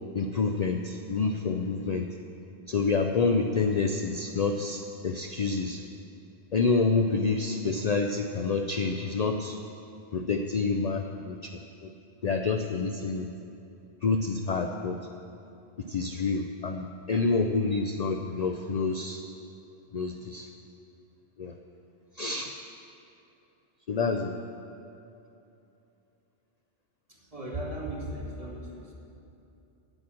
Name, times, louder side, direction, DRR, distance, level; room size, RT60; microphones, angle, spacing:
voice 1, 0.1-2.1 2.7-5.8 6.5-9.6 10.1-11.5 11.8-11.9 12.2-13.3 14.0-15.0 15.9-19.2 19.9-20.5 21.4-21.5 22.2-22.5 23.9-24.3, left 4 dB, 50° left, 5 dB, 0.5 m, -28 dB
voice 2, 27.1-28.9, right 1 dB, 35° right, -3 dB, 1.9 m, -37 dB
9.0 x 8.6 x 7.5 m, 2.8 s
omnidirectional pair, 1.1 m